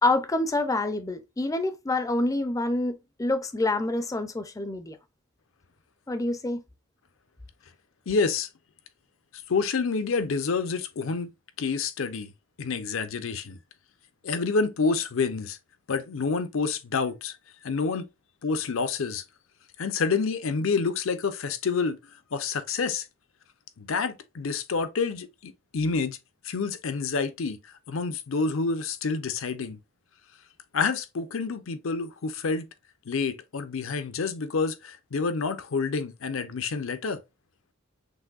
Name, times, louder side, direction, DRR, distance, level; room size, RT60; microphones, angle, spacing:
voice 1, 0.0-5.0 6.1-6.6, left 2 dB, 15° left, 0.4 m, -27 dB
voice 2, 8.1-8.5 9.5-11.3 11.6-12.3 12.6-13.6 14.2-15.6 15.9-17.4 17.6-18.1 18.4-19.2 19.8-22.0 22.3-23.1 23.8-26.2 26.4-29.8 30.7-32.7 33.1-37.2, left 4 dB, 70° left, 0.6 m, -28 dB
6.2 x 2.6 x 2.3 m
head